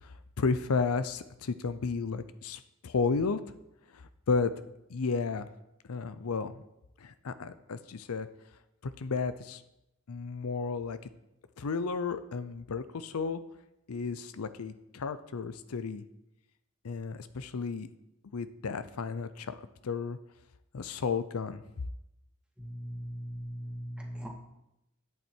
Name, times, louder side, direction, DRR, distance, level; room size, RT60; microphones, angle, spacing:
voice 1, 0.0-3.4 3.9-4.5 4.9-5.5 5.9-6.6 7.0-8.3 9.0-9.6 10.1-11.0 11.6-13.4 13.9-16.0 16.8-17.9 18.3-20.2 20.7-21.6, left 4 dB, 85° left, 13 dB, 0.6 m, -33 dB
voice 2, 22.6-24.3, equal, 5° right, -2 dB, 2.0 m, -39 dB
11.0 x 8.4 x 4.5 m, 0.86 s
head